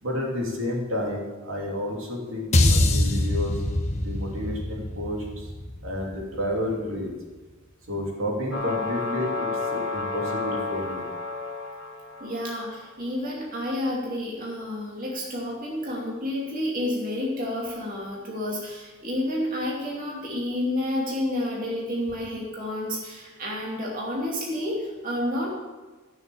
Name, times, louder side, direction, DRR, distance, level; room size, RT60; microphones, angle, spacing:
voice 1, 0.0-3.6 4.0-5.5 5.8-7.1 7.9-11.1, left 1 dB, 70° right, -2 dB, 3.0 m, -30 dB
sound 1, 2.5-6.9, left 1 dB, 35° left, 1.2 m, -24 dB
sound 2, 8.5-12.6, left 3 dB, 65° left, 2.4 m, -31 dB
voice 2, 12.2-25.5, left 1 dB, 40° right, -3 dB, 2.6 m, -30 dB
14.0 x 6.9 x 7.1 m, 1.3 s
head